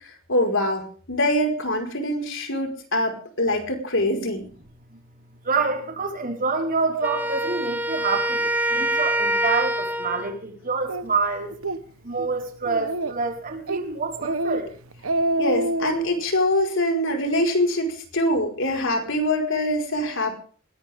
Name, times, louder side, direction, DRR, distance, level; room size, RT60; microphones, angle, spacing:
voice 1, 0.3-0.8 1.1-4.4 15.4-20.3, left 1 dB, 65° left, 4 dB, 5.1 m, -24 dB
voice 2, 5.4-11.5 12.0-14.7, right 4 dB, 45° right, 1 dB, 5.0 m, -27 dB
Wind instrument woodwind instrument, 7.0-10.4, right 1 dB, 10° right, 1.2 m, -25 dB
Speech, 10.9-11.0 11.5-11.8 12.2-12.3 12.6-13.3 13.7-13.9 14.2-14.6 14.9-16.0, right 1 dB, 90° right, 1.2 m, -26 dB
21.0 x 18.5 x 3.7 m, 0.43 s
head